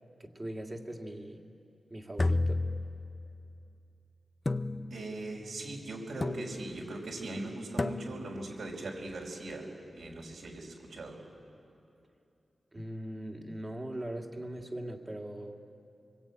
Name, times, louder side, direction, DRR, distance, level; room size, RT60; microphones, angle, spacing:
voice 1, 0.2-1.4 1.9-2.7 12.7-15.6, right 1 dB, 25° right, 3 dB, 2.2 m, -40 dB
sound 1, 2.2-3.4 4.5-5.3 6.2-6.8 7.8-8.4, left 2 dB, 30° left, 0.7 m, -32 dB
voice 2, 4.9-11.2, right 2 dB, 80° right, 0 dB, 5.1 m, -40 dB
24.5 x 22.0 x 9.0 m, 2.7 s
wide cardioid pair, 75°, 0 cm